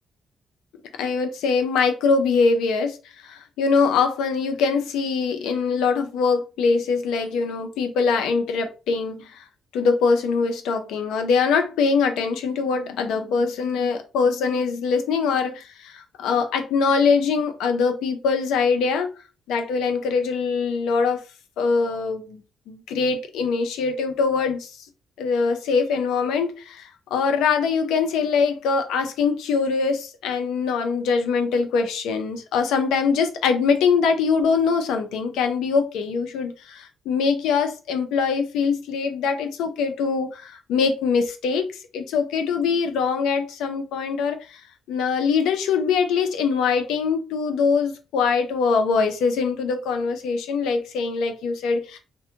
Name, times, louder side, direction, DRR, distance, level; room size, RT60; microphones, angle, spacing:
voice 1, 1.0-9.5 9.7-19.1 19.5-21.2 21.6-24.8 25.2-44.6 44.9-52.0, left 5 dB, 85° left, 0.5 m, -23 dB
2.6 x 2.1 x 2.7 m
supercardioid pair, 70°, 0 cm